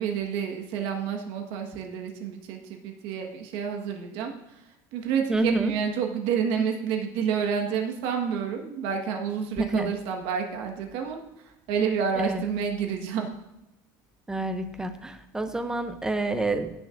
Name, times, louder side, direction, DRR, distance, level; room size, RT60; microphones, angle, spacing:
voice 1, 0.0-4.3 4.9-11.2 11.7-13.3, right 7 dB, 65° right, 3 dB, 1.5 m, -29 dB
voice 2, 5.3-5.7 9.6-9.9 12.2-12.4 14.3-16.7, right 2 dB, 5° right, 8 dB, 0.6 m, -28 dB
16.5 x 6.6 x 2.6 m, 0.91 s
cardioid pair, 160°, 9 cm